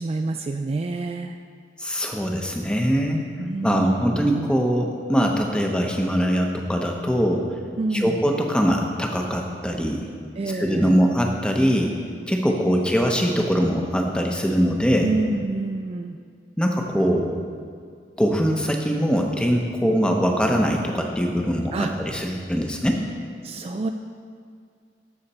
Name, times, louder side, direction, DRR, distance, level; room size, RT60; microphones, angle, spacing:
voice 1, 0.0-1.4 3.4-4.5 7.8-8.2 10.4-11.0 15.0-16.2 21.7-21.9 23.4-23.9, right 2 dB, 35° right, 5 dB, 0.3 m, -27 dB
voice 2, 1.8-3.2 3.6-7.4 7.9-10.0 10.5-11.9 12.3-15.1 16.6-17.4 18.2-23.0, equal, 5° left, 2 dB, 0.8 m, -22 dB
13.5 x 6.6 x 4.3 m, 2.2 s
head